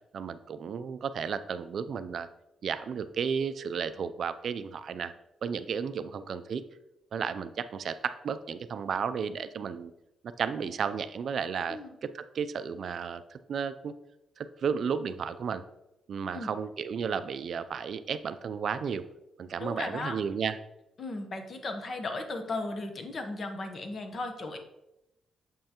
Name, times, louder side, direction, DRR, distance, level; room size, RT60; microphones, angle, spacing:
voice 1, 0.1-2.3 2.6-5.1 5.4-6.6 7.1-9.9 10.4-13.9 14.4-15.6 16.1-19.0 19.4-20.6, right 6 dB, 55° right, 12 dB, 0.4 m, -33 dB
voice 2, 19.6-20.2 21.0-24.6, left 2 dB, 40° left, 6 dB, 0.9 m, -36 dB
7.4 x 5.5 x 2.9 m, 0.89 s
cardioid pair, 135°, 0 cm